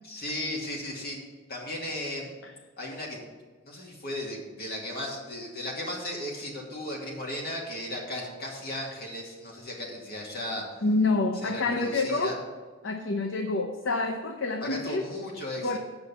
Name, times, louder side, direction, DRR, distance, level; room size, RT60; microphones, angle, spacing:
voice 1, 0.0-1.2 1.5-2.3 2.8-3.2 3.7-10.7 11.4-12.4 14.6-15.8, left 1 dB, 50° left, -2 dB, 2.2 m, -35 dB
voice 2, 10.8-12.4 12.8-15.0 15.6-15.8, left 3 dB, 65° left, 4 dB, 0.7 m, -27 dB
8.0 x 5.3 x 6.9 m, 1.5 s
head